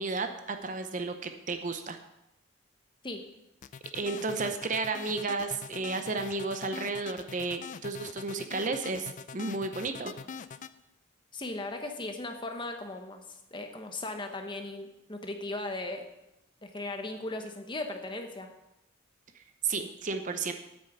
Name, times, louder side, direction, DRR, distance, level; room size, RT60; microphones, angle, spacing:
voice 1, 0.0-2.0 3.9-10.1 19.6-20.5, right 3 dB, 40° right, 7 dB, 0.7 m, -33 dB
sound 1, 3.6-10.7, left 6 dB, 40° left, 0.4 m, -43 dB
voice 2, 11.3-16.0 16.6-18.5, left 2 dB, 25° left, 5 dB, 1.0 m, -37 dB
8.9 x 6.5 x 8.0 m, 0.91 s
head